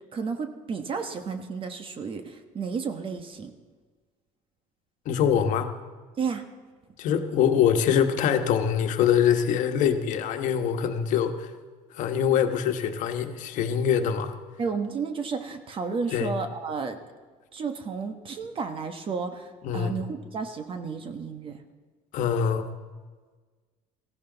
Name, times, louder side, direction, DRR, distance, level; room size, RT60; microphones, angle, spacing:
voice 1, 0.1-3.5 6.2-6.4 14.6-17.0 17.5-21.6, right 5 dB, 40° right, 7 dB, 1.3 m, -32 dB
voice 2, 5.0-5.7 7.0-11.5 11.9-14.3 16.1-16.3 19.6-20.0 22.1-22.6, left 8 dB, 60° left, 7 dB, 1.3 m, -24 dB
19.0 x 15.5 x 4.0 m, 1.4 s
cardioid pair, 110°, 14 cm